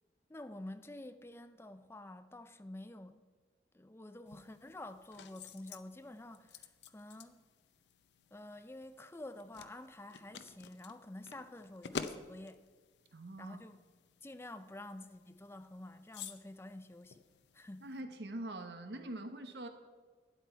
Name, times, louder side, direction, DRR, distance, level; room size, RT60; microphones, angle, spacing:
voice 1, 0.3-3.2 3.7-6.7 6.9-7.4 8.3-12.6 13.4-13.8 14.2-17.2 17.5-17.9, left 1 dB, 15° left, 0.5 m, -49 dB
sound 1, 4.3-18.0, left 5 dB, 80° left, 0.6 m, -51 dB
voice 2, 13.1-13.6 17.8-19.7, right 1 dB, 75° right, 1.2 m, -44 dB
12.5 x 9.6 x 4.6 m
head